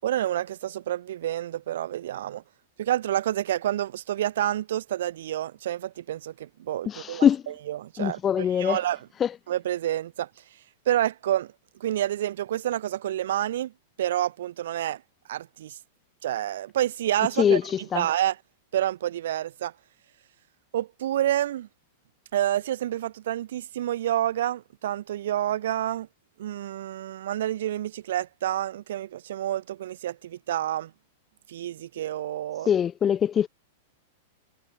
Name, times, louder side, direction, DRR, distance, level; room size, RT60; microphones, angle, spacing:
voice 1, 0.0-2.4 2.8-7.3 7.7-9.0 9.5-10.3 10.9-11.5 11.8-13.7 14.0-15.0 15.3-15.8 16.2-17.6 17.9-18.4 18.7-19.7 20.7-21.7 22.3-26.1 26.4-30.9 31.5-32.7, right 12 dB, 75° right, 1.9 m, -28 dB
voice 2, 6.9-7.4 8.0-8.8 9.2-9.3 17.4-18.1 32.7-33.5, left 8 dB, 20° left, 0.7 m, -23 dB
supercardioid pair, 145°, 0 cm